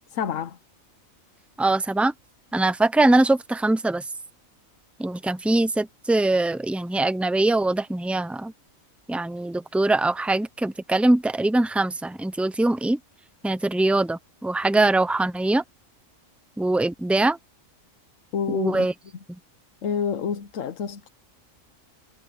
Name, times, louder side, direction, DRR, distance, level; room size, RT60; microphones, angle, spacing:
voice 1, 0.1-0.6 18.3-18.9 19.8-21.1, left 7 dB, 75° left, 1.2 m, -28 dB
voice 2, 1.6-2.1 2.5-4.0 5.0-8.5 9.1-13.0 13.4-15.6 16.6-17.4 18.5-18.9, right 2 dB, ahead, 0.3 m, -22 dB
omnidirectional pair, 1.4 m